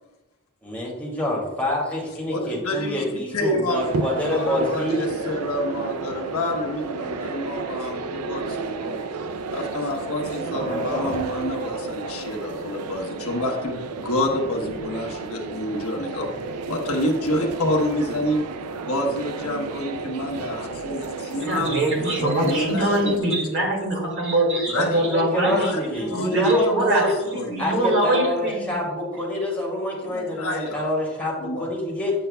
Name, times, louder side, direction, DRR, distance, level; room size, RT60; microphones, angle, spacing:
voice 1, 0.6-5.1 10.5-11.2 24.7-27.1 27.6-32.1, left 1 dB, 5° left, -4 dB, 2.4 m, -27 dB
voice 2, 2.3-3.9 4.3-9.0 9.5-16.3 16.7-18.4 18.8-23.5 24.7-25.0 25.5-26.4 26.7-27.6 30.0-30.9 31.4-31.7, left 1 dB, 70° left, 1 dB, 1.2 m, -28 dB
sound 1, 3.7-23.2, right 3 dB, 90° right, 0.5 m, -32 dB
voice 3, 21.4-25.7 26.1-28.8, right 1 dB, 55° right, -1 dB, 2.1 m, -23 dB
8.4 x 8.0 x 2.2 m, 1.1 s
head